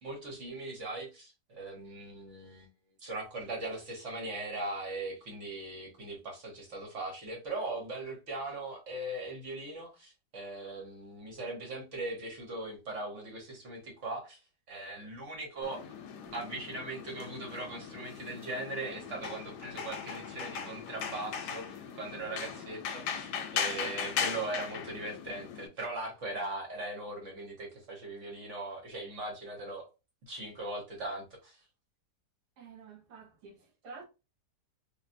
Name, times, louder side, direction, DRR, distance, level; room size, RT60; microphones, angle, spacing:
voice 1, 0.0-2.7 3.0-14.4 14.7-15.9 16.3-29.9 30.3-31.6, right 2 dB, 50° right, 1.2 m, -39 dB
sound 1, 15.6-25.7, left 7 dB, 75° left, 1.1 m, -38 dB
voice 2, 32.6-34.0, right 4 dB, 70° right, 1.3 m, -50 dB
3.1 x 2.6 x 2.5 m
omnidirectional pair, 1.9 m